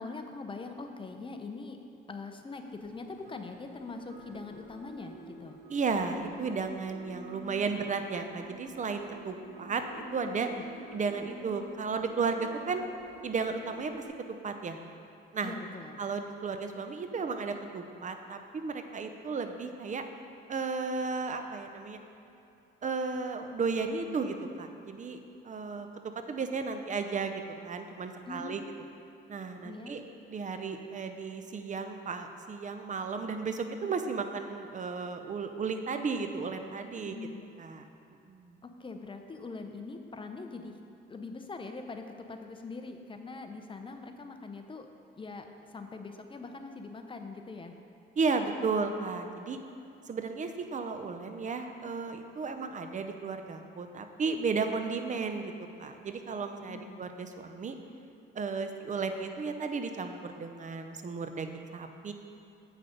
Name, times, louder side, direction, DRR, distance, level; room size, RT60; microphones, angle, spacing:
voice 1, 0.0-1.8 2.1-5.6 15.4-16.0 28.3-28.9 29.6-30.0 37.0-37.5 38.6-40.7 41.1-44.9 45.2-47.7 56.7-57.1, left 3 dB, 25° left, 5 dB, 0.7 m, -42 dB
sound 1, 2.7-14.1, right 1 dB, 90° right, 1.9 m, -49 dB
voice 2, 5.7-9.8 10.1-10.5 10.9-12.8 13.2-14.0 14.4-14.8 15.3-15.5 16.0-20.0 20.5-22.0 22.8-25.2 25.4-25.9 26.3-28.6 29.3-30.0 30.3-37.2 37.6-37.9 38.3-38.6 48.2-49.6 50.1-55.5 55.8-57.7 58.3-62.1, right 4 dB, 40° right, 7 dB, 0.7 m, -34 dB
8.1 x 6.0 x 5.1 m, 2.6 s
cardioid pair, 90°, 20 cm